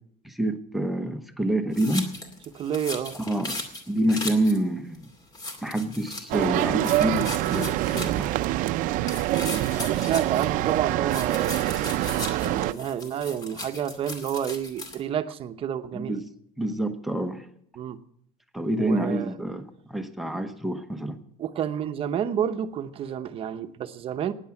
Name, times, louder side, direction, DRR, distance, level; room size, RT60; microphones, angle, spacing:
voice 1, 0.2-2.1 3.1-3.6 3.9-5.1 5.6-8.4 15.9-16.3 16.6-17.5 18.5-21.2, right 1 dB, ahead, 6 dB, 0.9 m, -27 dB
sound 1, 1.7-4.6 4.9-5.0 5.3-6.5 6.8-8.4 9.0-10.8 11.1-15.0, left 2 dB, 30° left, 2.5 m, -37 dB
voice 2, 2.5-3.1 9.7-11.5 12.6-16.2 17.8-18.0 18.8-19.3 21.4-24.3, right 9 dB, 40° right, 9 dB, 0.9 m, -30 dB
sound 2, 6.3-12.7, right 15 dB, 70° right, 0.6 m, -25 dB
15.5 x 9.9 x 7.2 m, 0.70 s
cardioid pair, 160°, 14 cm